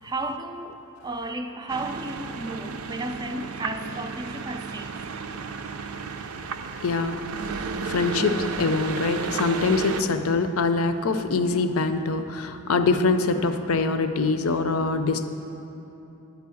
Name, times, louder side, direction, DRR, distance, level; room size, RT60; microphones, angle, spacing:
voice 1, 0.0-5.1, right 2 dB, 20° right, 0.4 m, -33 dB
sound 1, 1.7-10.0, right 5 dB, 80° right, 0.5 m, -33 dB
voice 2, 6.8-7.2 7.6-15.3, left 4 dB, 75° left, 0.6 m, -24 dB
12.0 x 4.7 x 8.5 m
head